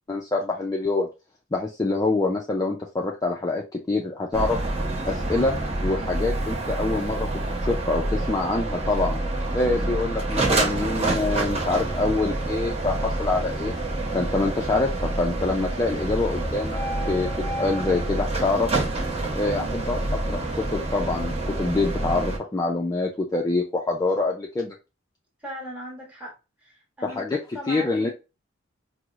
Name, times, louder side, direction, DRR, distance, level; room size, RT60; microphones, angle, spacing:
voice 1, 0.1-1.1 1.5-4.6 5.1-5.5 5.8-7.3 7.7-9.2 9.5-13.7 14.1-16.8 17.1-17.3 17.6-18.7 19.4-24.7 27.0-27.4 27.7-28.1, left 3 dB, 20° left, 0.3 m, -25 dB
sound 1, 4.3-22.4, right 2 dB, 30° right, 0.7 m, -27 dB
voice 2, 10.4-10.9 19.4-19.7 25.4-26.3 26.6-28.1, equal, 5° right, 1.1 m, -39 dB
4.5 x 2.0 x 2.4 m
head